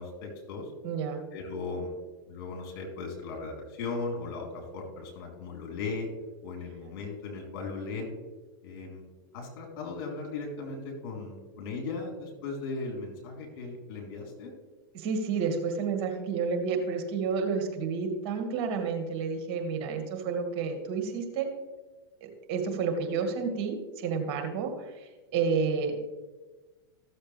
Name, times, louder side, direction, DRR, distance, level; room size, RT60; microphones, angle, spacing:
voice 1, 0.0-0.7 1.3-2.0 2.3-6.1 6.4-8.1 8.6-9.0 9.3-14.5, left 3 dB, 55° left, 0 dB, 3.5 m, -37 dB
voice 2, 0.8-1.2 14.9-21.5 22.2-26.0, right 5 dB, 50° right, 5 dB, 1.8 m, -30 dB
14.0 x 7.2 x 3.3 m, 1.3 s
hypercardioid pair, 100°, 13 cm